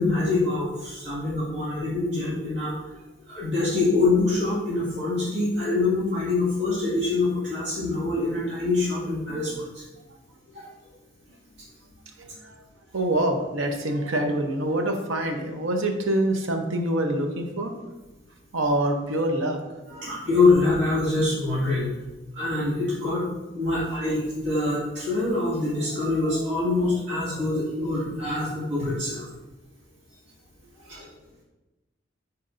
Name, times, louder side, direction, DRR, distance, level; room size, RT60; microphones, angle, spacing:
voice 1, 0.0-9.8 10.5-10.7 19.9-21.9 22.3-23.2 23.5-29.2 30.9-31.1, left 3 dB, 60° right, -10 dB, 2.1 m, -25 dB
voice 2, 12.2-12.5 12.9-17.7 18.5-20.2 23.5-23.7, right 1 dB, 90° right, 4 dB, 0.9 m, -26 dB
9.7 x 4.1 x 2.6 m, 1.1 s
head